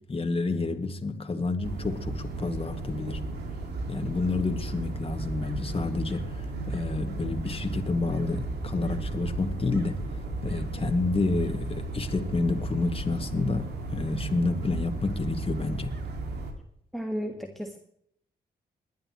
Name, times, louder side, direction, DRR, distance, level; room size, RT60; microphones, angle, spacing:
voice 1, 0.1-3.2 3.9-16.0, left 3 dB, 35° left, 2.1 m, -29 dB
sound 1, 1.6-16.5, right 2 dB, 80° right, 2.3 m, -34 dB
voice 2, 16.9-17.8, equal, ahead, 1.7 m, -33 dB
21.0 x 10.5 x 3.1 m
supercardioid pair, 55°, 17 cm